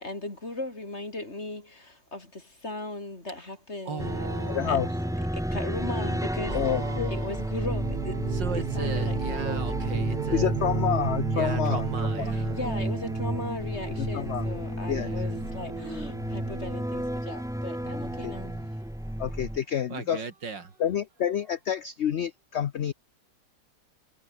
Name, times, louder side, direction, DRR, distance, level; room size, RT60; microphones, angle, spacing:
voice 1, 0.0-4.3 4.7-4.8 5.3-6.6 7.1-9.7 12.3-18.5, left 2 dB, 35° left, 5.0 m, -37 dB
voice 2, 3.9-5.3 6.5-7.6 8.3-10.5 11.3-12.6 15.0-15.4 17.8-18.7 19.9-20.7, right 5 dB, 85° right, 3.6 m, -38 dB
sound 1, 4.0-19.6, equal, 5° right, 0.7 m, -31 dB
voice 3, 4.5-4.9 6.5-7.1 10.3-11.9 12.2-12.3 14.0-14.5 14.9-15.1 18.2-18.3 19.2-20.2 20.8-22.9, left 9 dB, 55° left, 0.8 m, -28 dB
sound 2, 7.6-16.8, right 13 dB, 65° right, 1.1 m, -35 dB
omnidirectional pair, 1.9 m